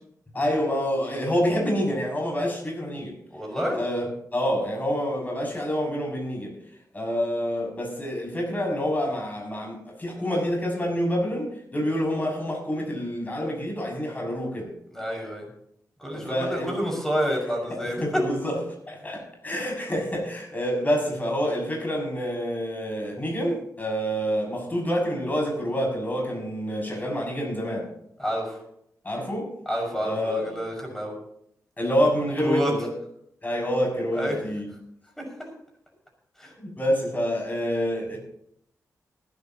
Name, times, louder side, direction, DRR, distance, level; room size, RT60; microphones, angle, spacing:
voice 1, 0.3-3.1 3.7-6.5 6.9-14.7 16.1-16.7 17.7-18.6 18.9-27.9 29.0-29.5 30.0-30.4 31.8-32.9 33.4-34.7 36.6-38.2, equal, 30° left, -1 dB, 6.9 m, -27 dB
voice 2, 3.3-3.8 14.9-15.5 16.0-18.2 28.2-28.6 29.7-31.1 32.4-32.7 34.1-34.4 35.2-35.3 36.4-36.5, equal, 5° left, 1 dB, 6.1 m, -28 dB
20.5 x 12.0 x 3.0 m, 0.71 s
cardioid pair, 80°, 6 cm